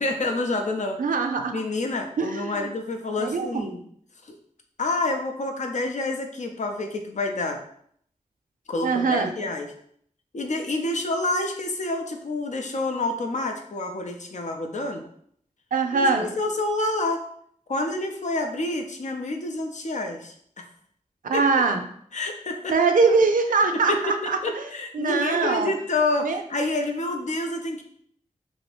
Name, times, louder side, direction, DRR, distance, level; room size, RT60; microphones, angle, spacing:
voice 1, 0.0-1.0 1.5-3.8 4.3-4.4 4.8-7.6 8.7-9.7 10.3-15.0 15.9-17.2 17.7-20.6 21.3-21.4 22.1-22.7 23.7-27.8, left 2 dB, 60° left, 3 dB, 0.5 m, -28 dB
voice 2, 1.0-1.6 2.2-2.7 3.2-3.7 8.8-9.3 15.7-16.3 21.2-21.8 22.7-24.7 24.9-25.7 26.2-26.4, right 4 dB, 80° right, 5 dB, 0.4 m, -22 dB
2.7 x 2.6 x 3.3 m, 0.65 s
cardioid pair, 50°, 14 cm